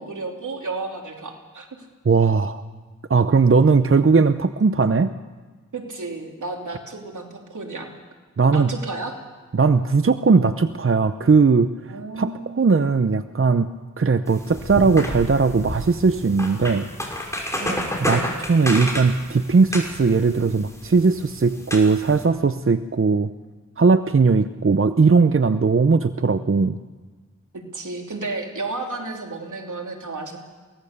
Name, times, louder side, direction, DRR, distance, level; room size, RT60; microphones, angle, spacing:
voice 1, 0.0-1.7 5.7-7.9 8.5-9.2 11.9-12.5 17.6-17.9 27.7-30.4, right 3 dB, 80° right, 1 dB, 3.2 m, -32 dB
voice 2, 2.0-2.6 3.1-5.1 8.4-8.7 9.5-11.7 12.1-13.7 14.0-16.9 18.0-23.3 23.8-26.8, right 4 dB, 45° right, 11 dB, 0.8 m, -18 dB
sound 1, 14.3-22.2, equal, 10° left, 5.7 m, -31 dB
23.5 x 17.5 x 6.8 m, 1.4 s
cardioid pair, 40°, 30 cm